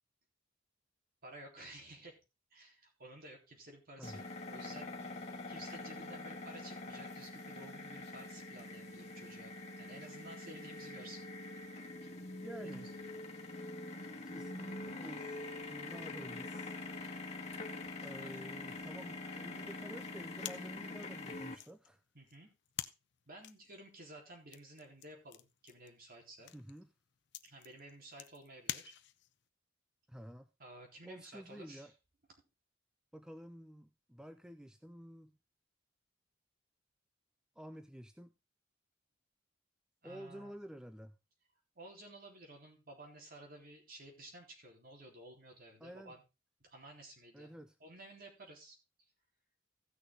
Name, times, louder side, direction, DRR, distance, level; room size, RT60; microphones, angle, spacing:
voice 1, 1.2-2.2 2.5-11.2 12.6-12.9 18.2-18.5 22.1-22.5 23.3-26.5 27.4-28.9 30.6-31.9 40.0-40.5 41.8-46.2 46.6-47.5 47.8-48.8, right 1 dB, 50° right, 3.8 m, -54 dB
sound 1, 4.0-21.5, left 2 dB, 35° left, 1.7 m, -45 dB
voice 2, 4.0-4.4 12.4-12.9 14.2-16.8 18.0-22.0 26.5-26.9 30.1-30.5 31.0-31.9 33.1-35.3 37.6-38.3 40.0-41.2 45.8-46.1 47.3-47.8, equal, 5° right, 0.5 m, -50 dB
sound 2, 20.4-29.4, left 12 dB, 65° left, 0.7 m, -49 dB
15.5 x 6.3 x 3.9 m
head